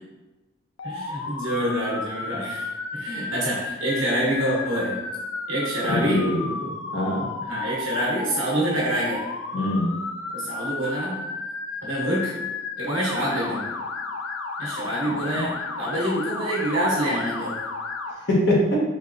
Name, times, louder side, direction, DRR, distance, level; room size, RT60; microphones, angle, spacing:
Motor vehicle (road) / Siren, 0.8-18.1, left 4 dB, 85° left, 0.4 m, -33 dB
voice 1, 0.8-2.7 2.9-5.0 5.5-6.3 7.4-9.3 10.3-11.3 11.8-12.4 12.8-13.8 14.6-17.6, right 1 dB, 75° right, -5 dB, 1.0 m, -26 dB
voice 2, 5.9-7.3 9.5-9.9 15.3-15.4 18.3-18.8, left 1 dB, 60° left, -4 dB, 1.0 m, -23 dB
4.2 x 3.1 x 2.5 m, 1.1 s
head